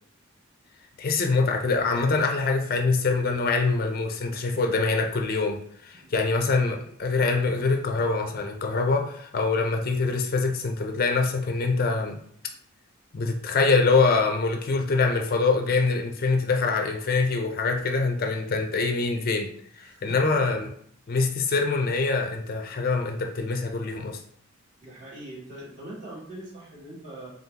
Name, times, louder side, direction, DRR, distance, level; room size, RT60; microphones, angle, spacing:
voice 1, 1.0-12.2 13.1-19.5 19.8-20.7 21.1-24.2, left 4 dB, 45° left, 3 dB, 0.4 m, -24 dB
voice 2, 19.8-20.4 24.8-27.3, right 1 dB, 40° right, -6 dB, 1.7 m, -42 dB
3.7 x 3.6 x 2.8 m, 0.64 s
head